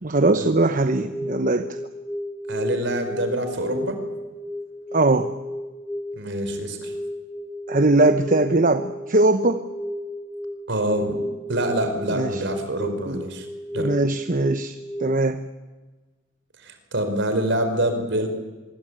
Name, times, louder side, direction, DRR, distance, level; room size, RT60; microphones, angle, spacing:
voice 1, 0.0-1.7 4.9-5.3 7.7-9.6 12.1-12.4 13.1-13.2 13.8-15.4, right 2 dB, 40° right, 9 dB, 1.0 m, -20 dB
sound 1, 0.7-15.1, equal, 5° left, 2.0 m, -33 dB
voice 2, 2.5-4.0 6.2-6.9 10.7-11.2 11.5-13.5 13.7-13.9 16.6-18.3, right 1 dB, 60° right, 7 dB, 5.0 m, -26 dB
25.0 x 22.5 x 9.0 m, 1.2 s
head